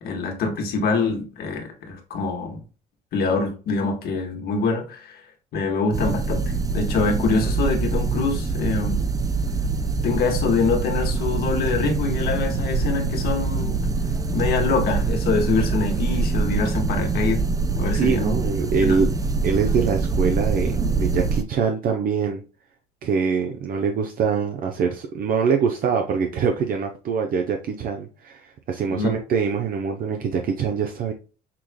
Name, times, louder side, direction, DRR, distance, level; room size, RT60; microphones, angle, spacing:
voice 1, 0.0-2.6 3.1-5.2 5.5-9.1 10.0-13.8 14.3-17.4 17.8-18.4 18.8-19.0 28.9-29.2, left 4 dB, 65° left, 1.6 m, -25 dB
sound 1, 5.9-21.4, right 4 dB, 20° right, 0.5 m, -24 dB
voice 2, 17.9-19.1 19.4-22.4 23.0-31.1, right 6 dB, 60° right, 0.7 m, -24 dB
6.0 x 3.2 x 2.2 m
cardioid pair, 110°, 17 cm